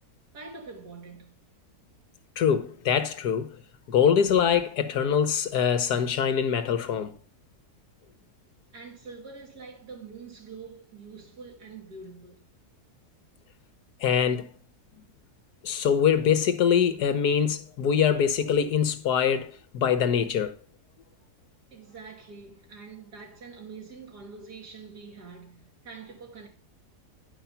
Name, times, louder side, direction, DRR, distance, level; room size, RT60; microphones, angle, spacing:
voice 1, 0.3-1.5 8.7-12.5 21.7-26.5, right 4 dB, 80° right, 3.3 m, -45 dB
voice 2, 2.4-3.6 3.9-7.1 14.0-14.5 15.6-20.5, left 8 dB, 80° left, 1.6 m, -24 dB
10.5 x 5.6 x 5.7 m
omnidirectional pair, 1.7 m